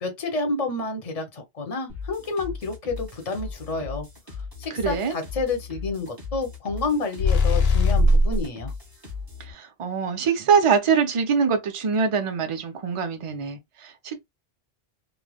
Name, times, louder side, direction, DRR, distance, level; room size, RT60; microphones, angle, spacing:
voice 1, 0.0-4.1 4.6-8.7, left 3 dB, 40° left, 0.8 m, -29 dB
sound 1, 1.9-9.5, left 5 dB, 20° right, 1.0 m, -38 dB
voice 2, 4.7-5.1 9.5-14.2, right 6 dB, 40° right, 0.5 m, -24 dB
sound 2, 7.2-8.4, left 2 dB, 75° left, 0.9 m, -18 dB
3.2 x 2.1 x 2.3 m
omnidirectional pair, 1.1 m